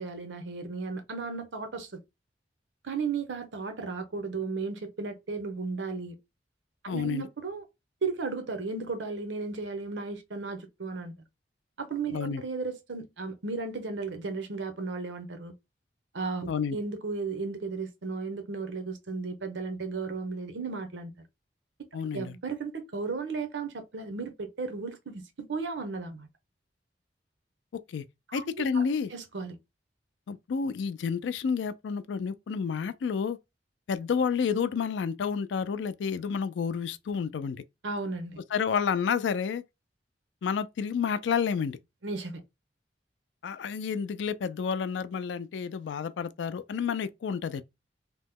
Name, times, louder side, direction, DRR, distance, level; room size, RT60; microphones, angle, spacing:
voice 1, 0.0-1.9 2.8-6.2 6.8-7.6 8.0-11.1 11.8-15.5 16.1-21.1 22.1-26.3 28.3-28.8 29.1-29.6 37.8-38.4 42.0-42.4, right 4 dB, 90° right, 0.7 m, -35 dB
voice 2, 6.9-7.3 12.1-12.4 16.5-16.8 21.9-22.3 27.9-28.0 28.3-29.1 30.3-33.4 33.9-37.6 38.5-39.6 40.4-41.8 43.4-47.6, left 6 dB, 75° left, 0.3 m, -30 dB
2.9 x 2.1 x 3.5 m
head